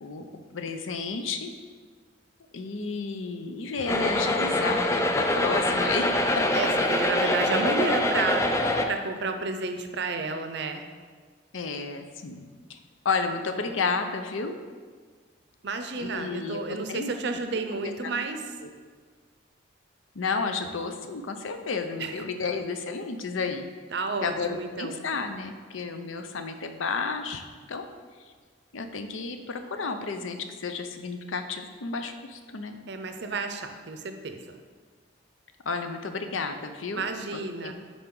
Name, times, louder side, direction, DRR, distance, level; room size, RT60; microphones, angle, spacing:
voice 1, 0.0-1.5 2.5-6.4 7.2-7.6 11.5-12.8 13.0-14.6 16.0-17.1 17.7-18.1 18.6-18.7 20.1-23.7 24.2-27.4 27.7-27.8 28.7-32.8 35.6-37.0 37.3-37.7, left 4 dB, 80° left, 7 dB, 0.6 m, -32 dB
sound 1, 3.9-8.9, left 1 dB, 15° left, 0.4 m, -24 dB
voice 2, 6.5-8.5 8.9-10.8 15.6-18.4 22.0-22.2 23.9-25.0 32.9-34.6 37.0-37.7, right 3 dB, 60° right, 7 dB, 0.6 m, -31 dB
10.5 x 3.9 x 3.8 m, 1.5 s
head